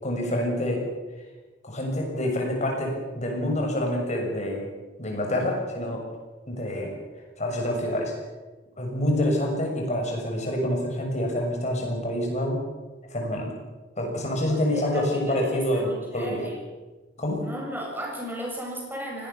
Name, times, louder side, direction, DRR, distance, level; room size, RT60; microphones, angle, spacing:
voice 1, 0.0-0.8 1.6-4.7 5.0-6.0 6.5-6.9 7.4-8.1 8.8-12.6 13.1-13.5 14.0-16.4 17.2-17.5, left 1 dB, 40° left, 1 dB, 6.8 m, -27 dB
voice 2, 14.4-16.7 17.4-19.3, equal, 10° right, -1 dB, 7.4 m, -35 dB
24.5 x 18.5 x 7.1 m, 1.2 s
head